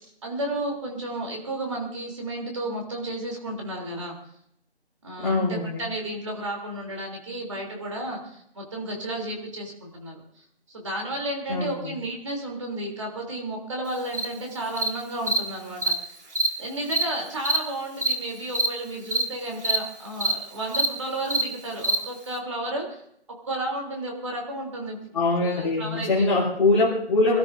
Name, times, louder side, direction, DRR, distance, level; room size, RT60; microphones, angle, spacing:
voice 1, 0.2-4.1 5.0-10.2 10.7-16.2 16.6-23.0 23.4-25.0 25.4-26.3, right 1 dB, 25° right, 0 dB, 3.4 m, -32 dB
voice 2, 5.2-5.8 11.5-11.9 25.1-27.4, left 2 dB, 5° left, -13 dB, 3.7 m, -23 dB
Cricket, 14.1-14.3 14.8-14.9 15.3-15.4 15.8-15.9 16.3-16.5 16.9-17.0 17.4-17.6 18.0-18.1 18.5-18.7 19.1-19.2 19.6-19.8 20.2-20.3 20.7-20.9 21.3-21.4 21.8-22.0, right 3 dB, 80° right, 3.7 m, -23 dB
27.0 x 13.0 x 2.7 m, 0.70 s
figure-of-eight pair, 175°, 34 cm